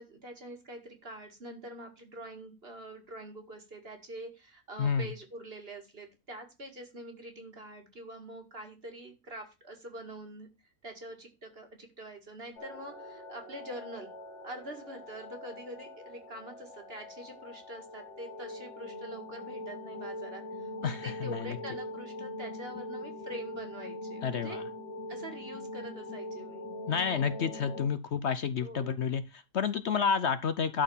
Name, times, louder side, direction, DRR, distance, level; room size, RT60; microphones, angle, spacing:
voice 1, 0.0-10.5 10.8-14.1 14.4-24.6 25.1-26.7 28.6-29.0, right 1 dB, 45° right, 4 dB, 2.3 m, -45 dB
sound 1, 12.6-27.9, left 1 dB, 85° left, 2.7 m, -42 dB
voice 2, 20.8-21.6 24.2-24.6 26.9-30.8, left 6 dB, 60° left, 12 dB, 0.9 m, -30 dB
12.0 x 4.5 x 7.1 m, 0.28 s
omnidirectional pair, 1.4 m